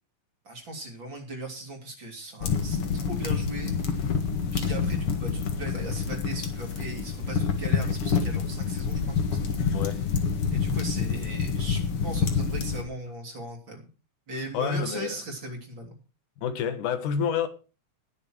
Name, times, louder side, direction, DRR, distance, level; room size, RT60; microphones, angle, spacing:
voice 1, 0.5-4.1 4.5-10.0 10.5-13.9 14.3-16.0, right 1 dB, 40° right, 3.8 m, -38 dB
sound 1, 2.4-12.8, left 6 dB, 50° left, 2.4 m, -27 dB
voice 2, 9.7-10.0 14.5-15.2 16.4-17.5, left 7 dB, 85° left, 2.9 m, -28 dB
20.0 x 6.7 x 4.7 m
omnidirectional pair, 3.5 m